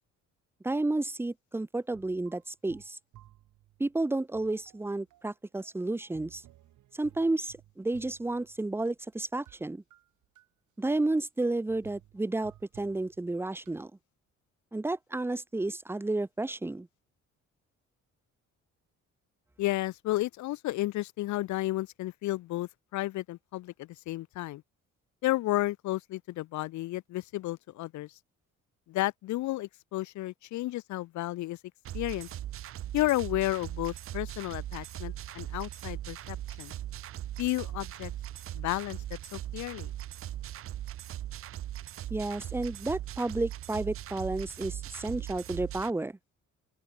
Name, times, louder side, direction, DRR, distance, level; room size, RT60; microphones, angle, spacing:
voice 1, 0.6-3.0 3.8-6.4 6.9-9.8 10.8-13.9 14.7-16.9 42.1-46.2, right 2 dB, 10° right, 0.7 m, -31 dB
sound 1, 1.9-4.0 4.3-9.6 9.9-10.5 11.0-11.1 11.3-11.4 11.7-13.9, right 14 dB, 80° right, 3.3 m, -58 dB
voice 2, 19.6-24.6 25.2-28.1 28.9-31.6 31.9-32.3 32.9-36.7 37.4-38.1 38.5-39.0 39.3-39.9, left 17 dB, 70° left, 0.5 m, -32 dB
sound 2, 31.8-45.9, right 12 dB, 50° right, 0.4 m, -39 dB
open air
cardioid pair, 90°, 30 cm